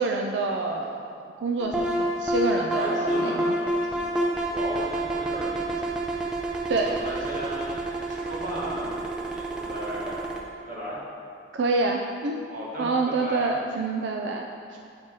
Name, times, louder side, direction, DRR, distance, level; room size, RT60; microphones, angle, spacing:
voice 1, 0.0-3.5 6.7-6.9 11.5-12.4 12.8-14.5, right 3 dB, 90° right, 2 dB, 0.4 m, -27 dB
sound 1, 1.6-10.4, right 1 dB, 5° right, 0.6 m, -29 dB
voice 2, 2.7-5.9 6.8-10.2 10.7-11.0 12.5-13.5, equal, 45° right, -6 dB, 1.7 m, -36 dB
8.3 x 4.3 x 4.7 m, 2.3 s
head